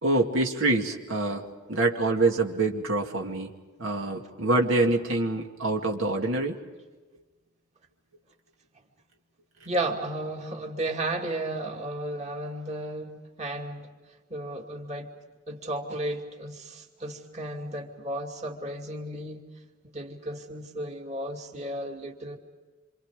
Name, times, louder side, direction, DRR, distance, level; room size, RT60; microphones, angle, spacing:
voice 1, 0.0-3.5 3.8-6.6, right 2 dB, 75° right, 1 dB, 2.3 m, -26 dB
voice 2, 9.6-13.1 13.4-13.9 14.3-15.1 15.5-19.4 19.8-22.4, right 1 dB, 35° right, 2 dB, 2.5 m, -33 dB
27.5 x 27.0 x 5.0 m, 1.3 s
head